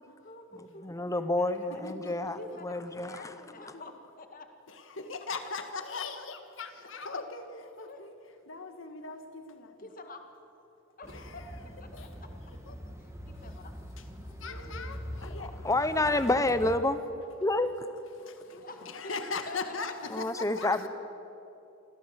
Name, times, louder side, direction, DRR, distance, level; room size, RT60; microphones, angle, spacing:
voice 1, 0.2-1.8 2.4-3.9 4.2-4.5 7.0-7.1 7.5-8.0 9.8-10.2 11.0-12.3 13.0-13.7 14.2-14.4 18.4-19.2 19.5-19.9, left 2 dB, 40° left, 6 dB, 1.9 m, -48 dB
voice 2, 0.8-3.3 15.4-17.0 17.4-17.9 20.1-20.9, left 2 dB, 15° left, 11 dB, 0.8 m, -29 dB
voice 3, 1.8-2.6 3.7-3.8 4.7-8.1 8.5-9.7 11.1-11.5 11.9-12.1 12.7-12.9 13.3-13.5 14.0-14.1 14.4-16.4 18.2-20.9, left 4 dB, 60° left, 8 dB, 1.8 m, -40 dB
sound 1, 11.0-16.8, equal, 15° right, 1.5 m, -43 dB
25.5 x 15.5 x 8.2 m, 2.9 s
head